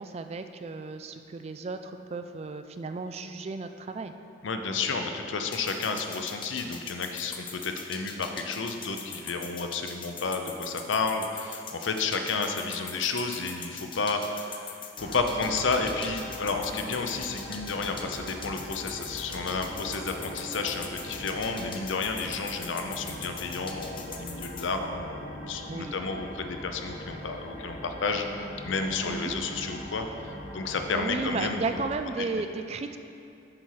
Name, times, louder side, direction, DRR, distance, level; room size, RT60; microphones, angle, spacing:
voice 1, 0.0-4.1 25.7-25.9 29.1-29.7 30.9-33.0, right 3 dB, 35° right, 8 dB, 0.3 m, -34 dB
voice 2, 4.4-28.2 28.6-31.6 32.2-32.4, left 4 dB, 85° left, 5 dB, 0.6 m, -31 dB
sound 1, 5.5-24.7, left 6 dB, 25° left, 0.5 m, -41 dB
sound 2, 15.0-31.9, equal, 55° left, 1.3 m, -41 dB
7.7 x 5.6 x 4.8 m, 2.6 s
head